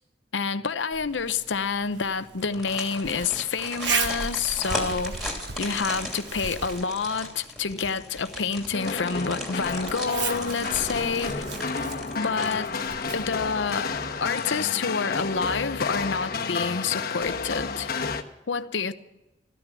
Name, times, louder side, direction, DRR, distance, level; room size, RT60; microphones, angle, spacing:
voice 1, 0.3-5.2 5.6-11.4 12.2-12.7 13.1-13.9 14.2-17.9 18.5-18.9, left 5 dB, 85° left, 0.8 m, -28 dB
Zipper (clothing), 0.9-14.5, right 5 dB, 75° right, 1.3 m, -37 dB
sound 1, 2.4-13.3 13.7-13.8 14.2-14.9 15.2-15.3, left 1 dB, ahead, 2.7 m, -38 dB
sound 2, 8.7-18.2, left 4 dB, 55° left, 1.1 m, -31 dB
14.0 x 13.5 x 6.1 m
head